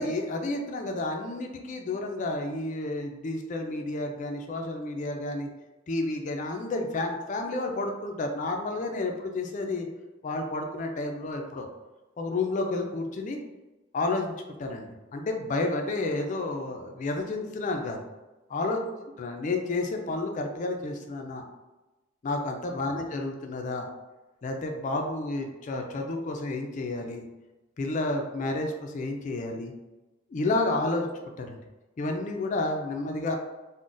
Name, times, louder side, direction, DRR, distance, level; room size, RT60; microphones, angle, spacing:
voice 1, 0.0-5.5 5.9-9.9 10.2-11.7 12.2-13.4 13.9-18.0 18.5-21.4 22.2-23.9 24.4-27.2 27.8-29.7 30.3-31.1 31.4-31.6 32.0-33.4, left 2 dB, 40° left, 3 dB, 0.3 m, -31 dB
3.8 x 2.1 x 2.4 m, 1.1 s
head